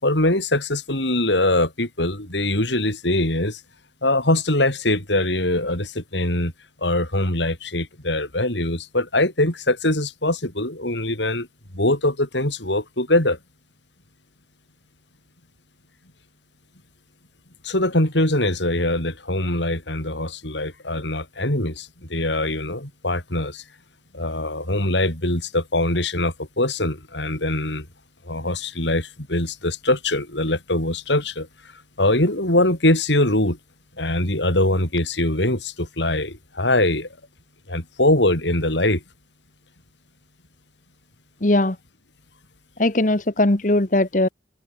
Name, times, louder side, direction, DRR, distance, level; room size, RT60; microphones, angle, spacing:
voice 1, 0.0-3.6 4.0-6.5 6.8-11.5 11.7-13.4 17.6-23.6 24.1-27.9 28.2-31.5 32.0-33.6 34.0-37.1 37.7-39.0, left 1 dB, 80° left, 8.0 m, -22 dB
voice 2, 41.4-41.8 42.8-44.3, left 1 dB, 45° left, 1.4 m, -19 dB
open air
head